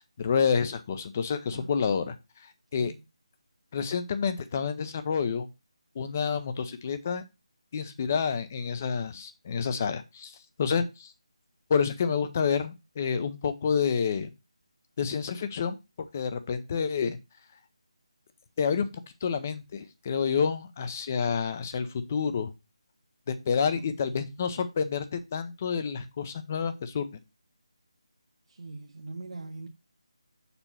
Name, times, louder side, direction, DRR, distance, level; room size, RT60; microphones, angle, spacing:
voice 1, 0.0-2.2 2.7-2.9 3.7-5.5 6.0-7.2 7.7-11.1 11.7-14.3 15.0-15.8 16.1-17.2 18.6-18.9 19.2-22.5 23.3-27.1, left 6 dB, 25° left, 0.6 m, -29 dB
voice 2, 23.7-24.4 28.5-29.7, right 3 dB, 70° right, 0.8 m, -42 dB
6.8 x 2.9 x 5.6 m
figure-of-eight pair, 170°, 3 cm